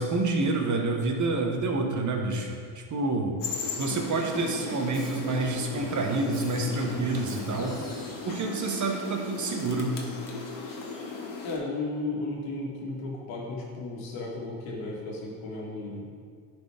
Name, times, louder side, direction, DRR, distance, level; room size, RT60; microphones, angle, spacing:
voice 1, 0.0-3.4 3.8-7.8 8.2-10.0, right 3 dB, 40° right, 2 dB, 1.3 m, -28 dB
sound 1, 3.4-11.6, left 4 dB, 45° left, 1.4 m, -37 dB
Drum kit / Drum, 3.9-8.3, equal, 15° right, 2.0 m, -42 dB
voice 2, 11.4-16.1, left 2 dB, 75° left, -2 dB, 1.9 m, -34 dB
11.0 x 4.6 x 3.5 m, 2.1 s
supercardioid pair, 85°, 47 cm